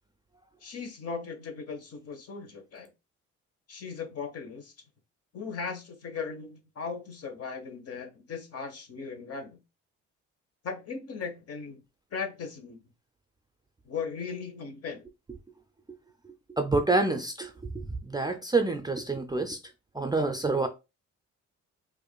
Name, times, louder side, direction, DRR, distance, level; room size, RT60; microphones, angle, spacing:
voice 1, 0.6-2.9 3.7-4.7 5.3-9.6 10.6-11.8 12.1-12.8 13.8-15.0, left 5 dB, 55° left, 1.0 m, -38 dB
voice 2, 16.6-19.6 19.9-20.7, right 3 dB, 15° right, 0.4 m, -27 dB
4.6 x 2.5 x 2.3 m
cardioid pair, 90°, 30 cm